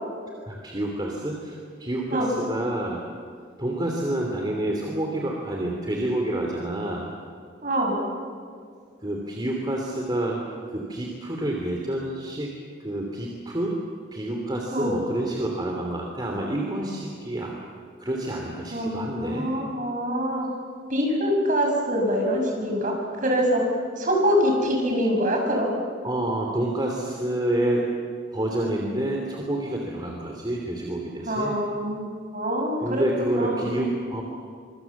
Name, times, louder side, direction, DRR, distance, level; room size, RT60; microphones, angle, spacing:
voice 1, 0.5-3.0 3.6-7.1 9.0-10.4 10.7-12.5 12.8-13.7 14.1-17.6 18.0-19.5 26.0-27.9 28.3-31.5 32.8-34.2, right 1 dB, 25° right, 0 dB, 2.9 m, -28 dB
voice 2, 7.6-8.1 14.7-14.9 18.7-20.5 20.9-22.9 23.2-23.6 24.0-25.7 31.2-32.1 32.3-33.6, equal, 45° right, 1 dB, 6.6 m, -24 dB
25.5 x 24.5 x 7.2 m, 2.1 s
head